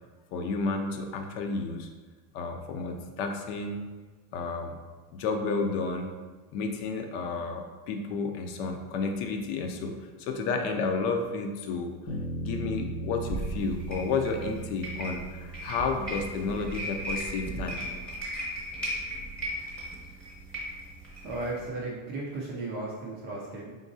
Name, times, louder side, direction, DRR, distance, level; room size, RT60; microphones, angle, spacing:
voice 1, 0.3-1.9 2.3-3.8 4.3-4.8 5.1-6.1 6.5-11.9 12.4-17.8, left 4 dB, 60° left, 4 dB, 0.6 m, -31 dB
Bass guitar, 12.1-16.4, right 1 dB, 85° left, 1.0 m, -38 dB
sound 1, 13.2-21.7, right 1 dB, 5° left, 0.9 m, -37 dB
voice 2, 21.2-23.8, right 2 dB, 25° right, -4 dB, 0.4 m, -35 dB
4.0 x 3.6 x 2.6 m, 1.3 s
cardioid pair, 155°, 44 cm